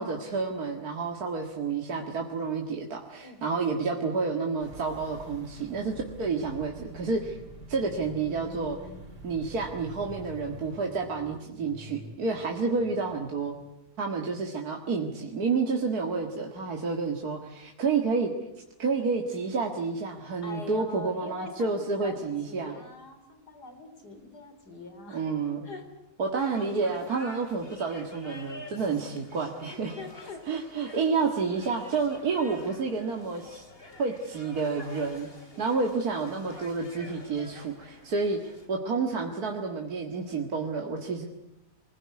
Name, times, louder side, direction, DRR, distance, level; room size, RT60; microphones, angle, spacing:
voice 1, 0.0-7.4 7.7-8.8 9.2-13.6 14.0-18.3 18.8-22.8 25.1-25.7 26.2-30.0 30.5-33.6 34.0-35.3 35.6-41.3, right 4 dB, 65° right, 2 dB, 2.3 m, -30 dB
sound 1, 4.6-10.8, right 1 dB, 85° right, 3.9 m, -46 dB
sound 2, 7.3-13.7, equal, 10° right, 4.2 m, -50 dB
voice 2, 20.4-22.2 22.5-25.3 25.6-25.8 28.6-29.0 29.7-30.4 30.8-31.0, left 2 dB, 75° left, 7 dB, 4.2 m, -43 dB
sound 3, 26.4-38.7, left 1 dB, 35° left, 3.6 m, -48 dB
25.0 x 20.5 x 9.6 m, 0.90 s
omnidirectional pair, 1.7 m